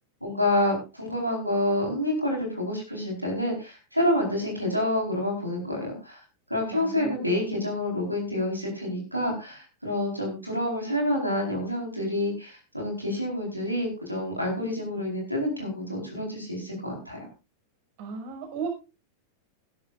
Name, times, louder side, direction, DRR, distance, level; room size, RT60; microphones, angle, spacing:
voice 1, 0.2-6.2 6.5-17.3, left 1 dB, 90° right, 0 dB, 4.5 m, -28 dB
voice 2, 6.7-7.6 18.0-18.7, right 5 dB, 50° right, 4 dB, 5.9 m, -36 dB
20.5 x 11.5 x 2.6 m, 0.29 s
figure-of-eight pair, 90°, 0 cm